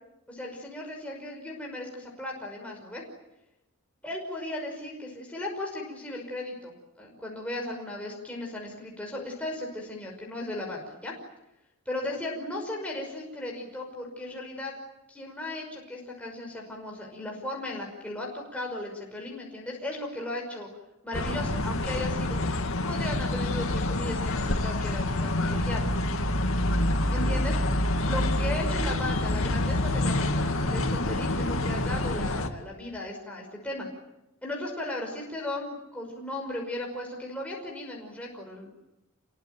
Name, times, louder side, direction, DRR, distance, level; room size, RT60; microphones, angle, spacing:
voice 1, 0.3-3.0 4.0-11.1 11.9-14.8 15.1-20.7 21.0-22.4 22.9-25.9 27.1-27.6 28.0-33.9 34.4-38.7, left 1 dB, 5° left, -1 dB, 5.7 m, -36 dB
sound 1, 21.1-32.5, left 1 dB, 75° left, 2.3 m, -27 dB
28.0 x 23.0 x 9.2 m, 0.93 s
head